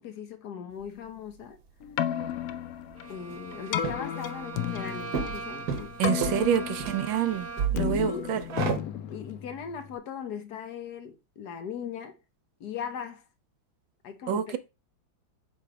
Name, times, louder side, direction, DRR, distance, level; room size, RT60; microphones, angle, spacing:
voice 1, 0.0-1.6 3.1-6.5 7.9-8.3 9.1-12.2 12.6-13.3 14.0-14.6, left 7 dB, 60° left, 1.2 m, -39 dB
sound 1, 0.8-0.9 2.9-3.0 3.2-3.4 3.7-4.3 4.5-7.0 7.2-8.8, right 7 dB, 55° right, 1.4 m, -31 dB
Keyboard (musical), 1.8-10.0, left 10 dB, 85° left, 0.8 m, -34 dB
Bowed string instrument, 2.9-7.9, right 4 dB, 20° right, 0.4 m, -41 dB
voice 2, 6.0-7.5 7.7-8.4 14.3-14.6, right 9 dB, 80° right, 1.4 m, -27 dB
7.6 x 3.2 x 5.0 m
omnidirectional pair, 2.1 m